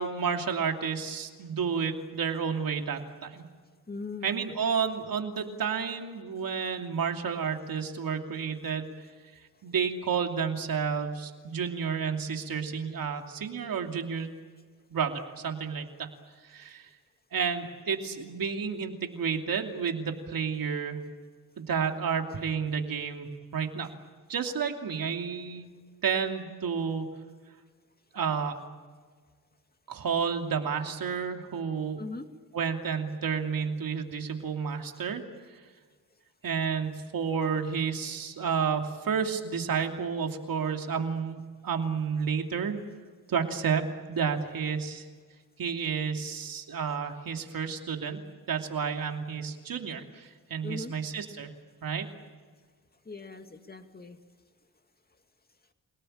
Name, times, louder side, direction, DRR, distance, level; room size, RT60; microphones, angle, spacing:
voice 1, 0.0-3.4 4.2-8.9 9.6-14.3 14.9-16.1 16.4-16.9 17.3-21.0 21.6-23.9 24.3-25.7 26.0-27.1 28.1-28.6 29.9-32.0 32.5-35.2 36.4-42.8 43.3-43.8 44.1-45.0 45.6-48.2 48.5-51.5 51.8-52.1, right 6 dB, 75° right, 4 dB, 2.8 m, -31 dB
voice 2, 3.9-4.3 32.0-32.3 50.6-50.9 53.0-54.2, left 3 dB, 25° left, 6 dB, 2.4 m, -39 dB
29.5 x 18.5 x 8.9 m, 1.5 s
cardioid pair, 85°, 35 cm